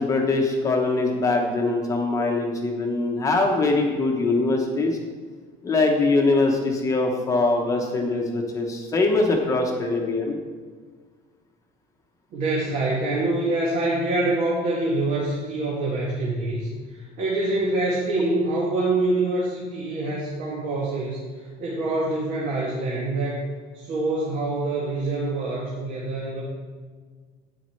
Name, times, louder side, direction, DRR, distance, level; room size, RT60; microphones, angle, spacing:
voice 1, 0.0-5.0 5.6-10.4, left 3 dB, 20° left, 1 dB, 1.0 m, -22 dB
voice 2, 12.3-21.2 21.6-23.4 23.7-26.4, right 2 dB, 60° right, -5 dB, 2.3 m, -25 dB
12.5 x 9.3 x 3.2 m, 1.5 s
cardioid pair, 170°, 17 cm